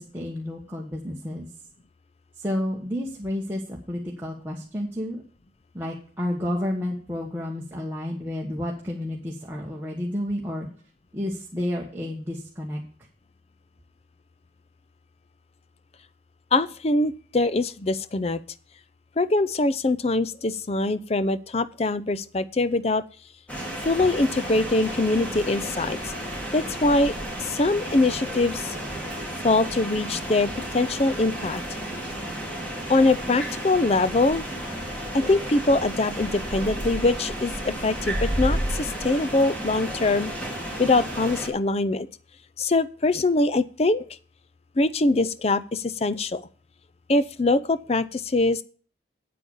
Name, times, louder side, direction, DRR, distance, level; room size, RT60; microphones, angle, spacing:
voice 1, 0.0-1.5 2.4-5.2 5.7-10.7 11.1-12.8, left 1 dB, 10° right, -3 dB, 1.4 m, -31 dB
voice 2, 16.5-18.4 19.2-23.0 23.8-26.1 26.5-28.8 29.4-31.6 32.9-34.4 35.1-40.3 40.8-42.1 42.6-44.0 44.8-46.5 47.1-48.6, left 2 dB, 35° left, 15 dB, 0.5 m, -23 dB
sound 1, 23.5-41.5, right 1 dB, 5° left, 2.2 m, -32 dB
8.6 x 8.2 x 5.4 m, 0.42 s
head